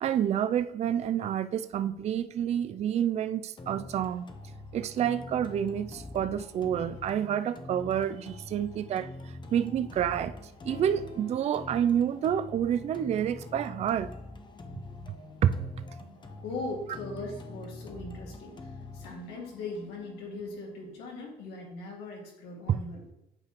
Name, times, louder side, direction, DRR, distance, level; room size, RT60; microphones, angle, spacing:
voice 1, 0.0-4.3 4.7-9.1 9.5-10.3 10.6-14.1 15.4-15.5 22.7-22.8, right 9 dB, 40° right, 12 dB, 0.4 m, -28 dB
sound 1, 3.6-21.6, left 2 dB, 25° left, 0.8 m, -45 dB
sound 2, 10.7-13.1, right 2 dB, 45° left, 2.2 m, -50 dB
voice 2, 16.4-23.1, left 2 dB, 85° left, -1 dB, 2.1 m, -40 dB
8.4 x 4.9 x 3.0 m, 0.90 s
cardioid pair, 110°, 17 cm